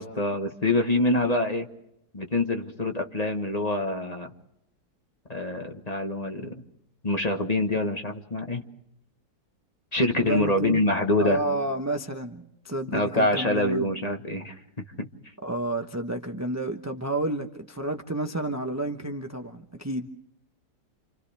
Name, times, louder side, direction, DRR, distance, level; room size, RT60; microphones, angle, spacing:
voice 1, 0.0-1.7 2.1-4.3 5.3-6.6 7.0-8.6 9.9-11.4 12.9-15.1, left 2 dB, 25° left, 1.3 m, -26 dB
voice 2, 10.2-10.8 11.2-13.9 15.4-20.1, right 2 dB, 15° right, 0.6 m, -30 dB
29.5 x 27.5 x 3.4 m
omnidirectional pair, 1.9 m